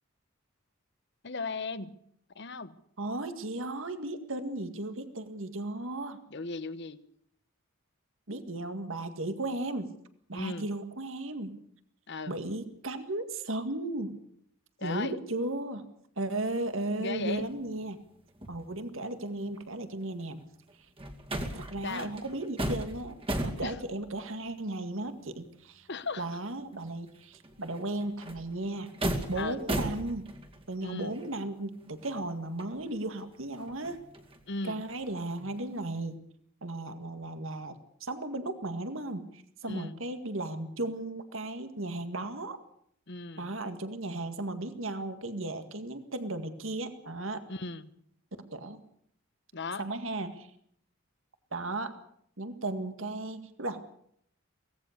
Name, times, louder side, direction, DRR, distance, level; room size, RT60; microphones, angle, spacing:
voice 1, 1.2-2.0 2.3-2.8 6.3-7.0 10.3-10.7 12.1-12.4 14.8-15.2 17.0-17.5 21.8-22.1 23.6-23.7 25.9-26.2 29.4-29.6 30.8-31.2 34.5-34.8 39.7-39.9 43.1-43.5 47.5-47.9 49.5-49.9, left 3 dB, 55° left, 14 dB, 1.1 m, -36 dB
voice 2, 3.0-6.2 8.3-9.9 10.3-11.6 12.3-14.2 14.8-15.9 16.2-18.0 18.5-20.4 20.7-20.9 21.4-25.9 26.2-28.9 29.3-30.3 30.7-34.0 34.6-36.2 36.6-42.6 43.4-47.4 48.4-48.8 49.8-50.5 51.5-52.0 52.4-53.8, right 2 dB, 65° right, 9 dB, 2.0 m, -35 dB
sound 1, 16.3-16.5 16.8-19.1 19.4-26.0 26.3-26.4 26.7-30.8 31.0-34.5 34.8-36.0, right 1 dB, 25° right, 2.4 m, -38 dB
24.5 x 18.0 x 6.7 m, 0.67 s
head